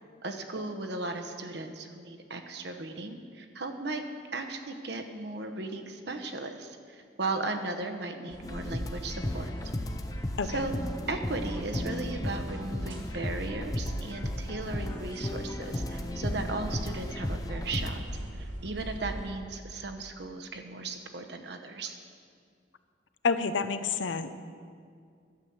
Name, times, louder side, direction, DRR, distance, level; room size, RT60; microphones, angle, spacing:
voice 1, 0.2-4.0 4.3-9.5 10.4-10.7 11.1-18.0 18.3-22.0, right 3 dB, 60° right, 5 dB, 1.0 m, -36 dB
sound 1, 8.3-19.3, equal, 80° right, 1.6 m, -41 dB
sound 2, 8.4-17.9, left 1 dB, 20° left, 0.6 m, -35 dB
voice 2, 23.2-24.3, left 5 dB, 80° left, 11 dB, 0.6 m, -28 dB
12.0 x 8.0 x 7.1 m, 2.2 s
head